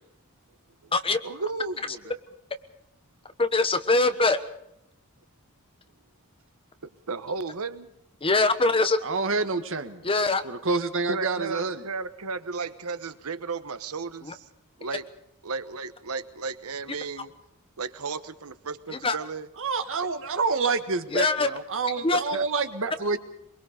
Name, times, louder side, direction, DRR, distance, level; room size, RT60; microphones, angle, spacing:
voice 1, 1.2-2.1 7.1-7.9 11.1-14.5 14.8-15.1 15.4-17.3 17.8-19.5 22.1-22.5 22.8-22.9, right 4 dB, 80° right, 12 dB, 1.0 m, -34 dB
voice 2, 3.4-4.4 8.2-9.0 10.0-10.4 19.0-19.2 21.1-21.5 22.0-22.2, left 3 dB, 25° left, 10 dB, 1.2 m, -22 dB
voice 3, 9.0-10.0 10.4-11.8 19.6-23.2, right 4 dB, 60° right, 8 dB, 1.6 m, -27 dB
23.5 x 23.0 x 5.1 m, 0.78 s
head